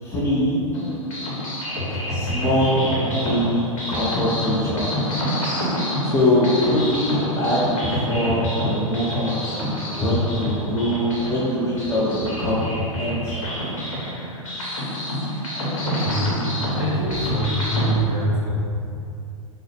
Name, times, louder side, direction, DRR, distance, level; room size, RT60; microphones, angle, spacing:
voice 1, 0.0-0.6 2.0-4.9 5.7-5.8 6.0-12.6 13.0-13.7, left 1 dB, 15° left, -8 dB, 0.6 m, -23 dB
sound 1, 0.7-17.9, equal, 70° left, 0.9 m, -27 dB
voice 2, 15.8-16.3 16.7-18.6, equal, 20° right, -13 dB, 1.4 m, -24 dB
3.6 x 2.0 x 3.3 m, 2.6 s
figure-of-eight pair, 95°, 17 cm